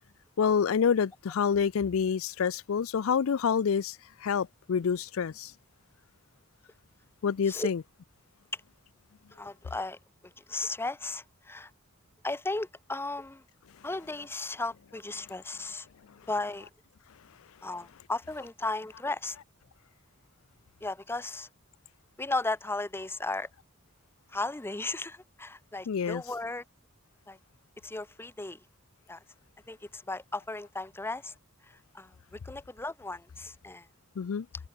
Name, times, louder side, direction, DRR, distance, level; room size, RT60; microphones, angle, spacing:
voice 1, 0.4-5.5 7.2-7.8 25.9-26.2 34.2-34.5, left 6 dB, 70° left, 0.4 m, -27 dB
voice 2, 9.3-11.7 12.2-13.4 13.8-15.9 16.3-16.7 17.6-19.4 20.8-21.5 22.2-23.5 24.3-26.6 27.3-27.4 27.8-28.6 29.1-29.2 29.7-31.3 31.6-33.9, left 2 dB, 10° left, 0.6 m, -35 dB
head